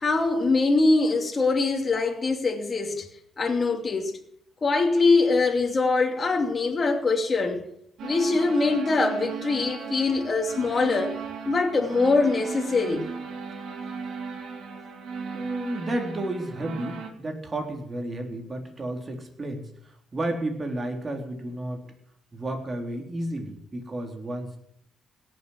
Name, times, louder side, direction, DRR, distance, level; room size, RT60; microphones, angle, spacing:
voice 1, 0.0-3.1 3.4-4.2 4.6-7.6 8.0-11.1 11.5-13.1, left 3 dB, 35° left, 2.8 m, -23 dB
sound 1, 8.0-17.1, right 6 dB, 75° right, 3.4 m, -36 dB
voice 2, 15.3-21.8 22.3-24.6, right 1 dB, 30° right, 3.7 m, -32 dB
17.5 x 7.4 x 9.3 m
cardioid pair, 90°, 0 cm